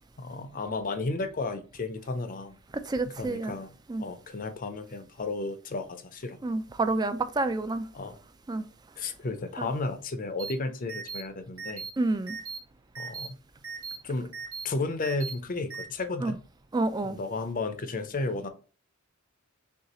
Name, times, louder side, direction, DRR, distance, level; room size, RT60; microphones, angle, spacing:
voice 1, 0.2-2.6 3.1-3.7 4.0-6.4 7.9-8.2 9.0-11.8 13.0-13.4 14.0-14.3 14.6-16.4 17.0-18.5, left 3 dB, 40° left, 0.5 m, -33 dB
voice 2, 2.7-3.5 3.9-4.1 6.4-7.9 8.5-8.6 9.6-9.7 12.0-12.4 16.2-16.3 16.7-17.2, right 2 dB, 20° right, 0.3 m, -29 dB
sound 1, 10.4-10.5 10.9-11.2 11.6-11.9 12.3-12.6 13.0-13.3 13.6-14.0 14.3-14.7 15.0-15.3 15.7-15.8, right 5 dB, 70° right, 1.2 m, -37 dB
6.5 x 2.4 x 2.9 m
head